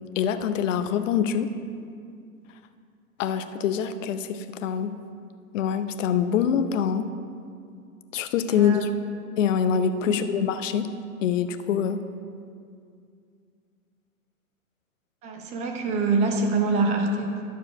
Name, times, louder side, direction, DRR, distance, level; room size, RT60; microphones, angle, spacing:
voice 1, 0.2-1.5 3.2-4.9 5.5-7.1 8.1-8.9 9.4-10.9 11.2-12.0, left 8 dB, 60° left, 10 dB, 0.7 m, -25 dB
voice 2, 8.5-8.9 10.1-10.3 15.2-17.5, right 3 dB, 15° right, 3 dB, 0.6 m, -25 dB
12.0 x 4.7 x 5.9 m, 2.3 s
hypercardioid pair, 145°, 44 cm